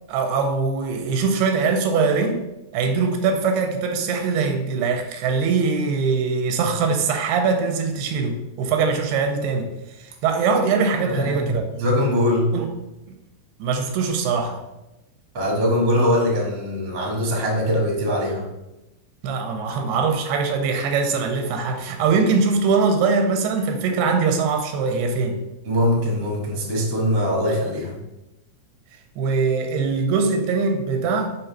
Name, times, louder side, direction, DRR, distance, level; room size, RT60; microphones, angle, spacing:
voice 1, 0.1-2.4 2.7-9.7 10.0-11.6 12.5-12.7 13.6-14.6 19.2-25.4 29.2-31.4, right 4 dB, 85° right, 5 dB, 2.7 m, -22 dB
voice 2, 11.0-12.5 15.3-18.5 25.6-28.0, equal, 55° right, -2 dB, 1.3 m, -22 dB
6.9 x 3.0 x 5.4 m, 0.96 s
omnidirectional pair, 4.7 m